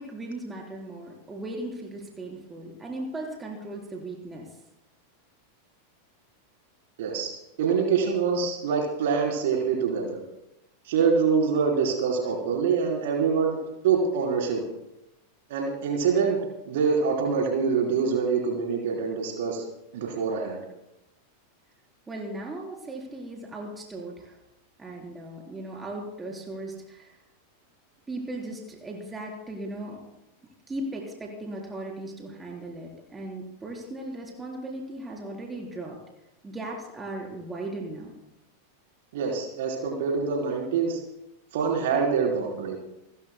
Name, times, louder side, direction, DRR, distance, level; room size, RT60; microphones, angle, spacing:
voice 1, 0.0-4.5 22.1-24.4 24.8-27.2 28.1-30.0 30.7-36.0 36.4-38.1, right 1 dB, 15° right, -1 dB, 4.0 m, -37 dB
voice 2, 7.0-10.2 10.9-14.6 15.5-16.4 16.7-19.6 19.9-20.6 39.1-41.0 41.5-42.8, right 5 dB, 55° right, 0 dB, 3.8 m, -25 dB
29.5 x 14.0 x 2.2 m, 0.89 s
figure-of-eight pair, 90°, 0 cm